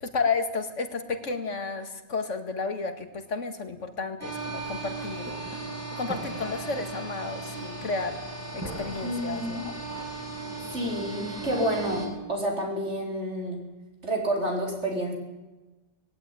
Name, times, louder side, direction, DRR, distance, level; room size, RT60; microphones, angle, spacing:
voice 1, 0.0-5.3 6.0-8.2 8.5-9.7, left 4 dB, 75° left, 8 dB, 2.2 m, -32 dB
sound 1, 4.2-12.1, right 2 dB, 10° right, 4.1 m, -36 dB
voice 2, 9.0-9.6 10.7-13.6 14.0-15.1, right 1 dB, 65° right, 0 dB, 4.9 m, -29 dB
19.0 x 16.0 x 9.9 m, 1.1 s
omnidirectional pair, 1.3 m